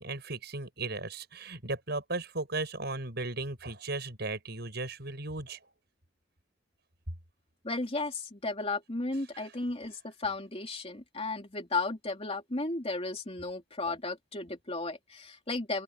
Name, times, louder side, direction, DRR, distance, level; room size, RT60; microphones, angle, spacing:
voice 1, 0.0-5.6 9.3-9.5, right 2 dB, 60° right, 7.6 m, -36 dB
voice 2, 7.6-15.8, left 3 dB, 30° left, 2.9 m, -34 dB
open air
head